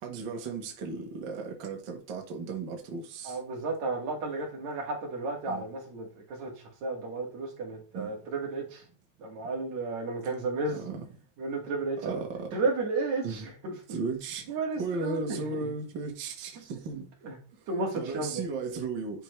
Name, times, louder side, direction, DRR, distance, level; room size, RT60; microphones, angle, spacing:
voice 1, 0.0-3.4 5.5-5.7 7.9-8.1 10.7-11.0 12.0-12.5 13.2-13.5 13.9-17.1 17.6-19.2, right 4 dB, 65° right, 1.1 m, -36 dB
voice 2, 3.2-6.5 6.8-8.8 9.2-10.8 11.4-12.2 12.5-13.7 14.5-15.7 16.6-16.7 17.2-17.3 17.7-18.4, right 3 dB, 50° right, 3.0 m, -33 dB
10.5 x 5.6 x 3.2 m
omnidirectional pair, 4.6 m